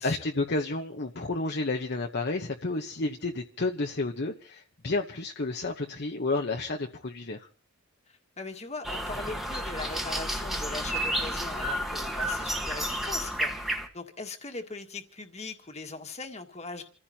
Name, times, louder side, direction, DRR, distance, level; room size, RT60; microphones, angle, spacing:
voice 1, 0.0-7.5, left 2 dB, 50° left, 1.0 m, -31 dB
voice 2, 8.1-16.8, left 3 dB, 30° left, 1.8 m, -40 dB
sound 1, 8.8-13.9, equal, ahead, 1.4 m, -31 dB
28.5 x 15.0 x 2.9 m
head